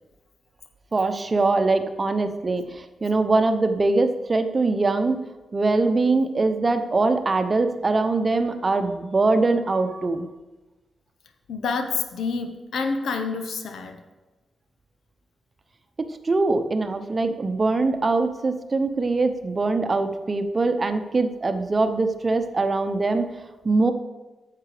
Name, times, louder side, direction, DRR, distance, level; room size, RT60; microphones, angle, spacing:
voice 1, 0.9-5.2 5.5-10.3 16.0-23.3 23.6-23.9, right 3 dB, 40° right, 9 dB, 0.8 m, -22 dB
voice 2, 11.5-14.0, left 4 dB, 80° left, 7 dB, 0.9 m, -28 dB
9.7 x 6.7 x 5.0 m, 1.1 s
cardioid pair, 55°, 0 cm